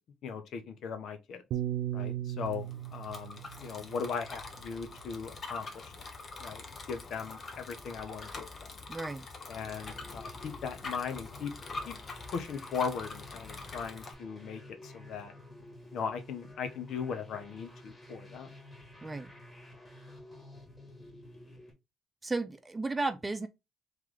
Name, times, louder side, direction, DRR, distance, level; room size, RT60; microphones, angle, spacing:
voice 1, 0.2-1.4 1.9-2.7 2.9-5.9 6.4-8.4 9.5-11.5 11.9-12.0 12.3-15.3 15.9-18.5, left 6 dB, 75° left, 0.9 m, -38 dB
Piano, 1.5-5.9, right 12 dB, 80° right, 0.4 m, -38 dB
Bicycle, 2.4-14.1, left 3 dB, 45° left, 1.0 m, -45 dB
voice 2, 8.9-9.2 19.0-19.3 22.2-23.5, right 3 dB, 20° right, 0.7 m, -34 dB
sound 1, 9.6-21.7, left 1 dB, 20° left, 1.9 m, -51 dB
3.3 x 3.2 x 3.7 m
cardioid pair, 90°, 0 cm